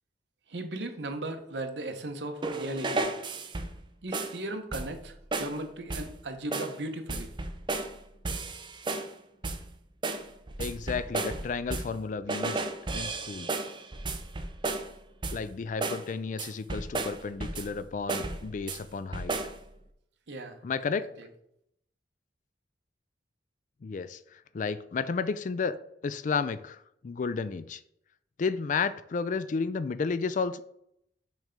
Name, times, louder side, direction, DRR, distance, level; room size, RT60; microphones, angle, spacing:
voice 1, 0.5-3.1 4.0-7.3 20.3-20.6 21.0-21.3, right 1 dB, 75° right, 7 dB, 0.9 m, -37 dB
sound 1, 2.4-3.8 4.1-4.4 4.7-5.0 5.3-5.6 5.9-6.2 6.5-6.8 7.1-8.0 8.3-9.1 9.4-9.7 10.0-12.0 12.3-14.9 15.2-15.5 15.8-16.1 16.4-17.8 18.1-18.8 19.1-19.6, right 2 dB, 25° right, 0.5 m, -33 dB
voice 2, 10.6-12.6 12.9-13.5 15.3-19.4 20.6-21.1 23.8-25.8 26.0-27.8 28.4-30.6, left 5 dB, 45° left, 14 dB, 0.3 m, -32 dB
6.2 x 3.3 x 5.1 m, 0.73 s
head